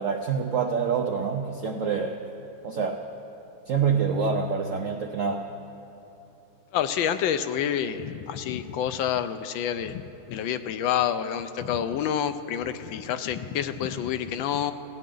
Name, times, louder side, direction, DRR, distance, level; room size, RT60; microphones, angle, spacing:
voice 1, 0.0-2.2 2.6-3.0 3.7-5.5, right 6 dB, 75° right, 4 dB, 0.7 m, -26 dB
voice 2, 6.7-10.0 10.3-14.7, left 9 dB, 75° left, 10 dB, 1.3 m, -28 dB
19.0 x 16.0 x 3.8 m, 2.9 s
omnidirectional pair, 2.2 m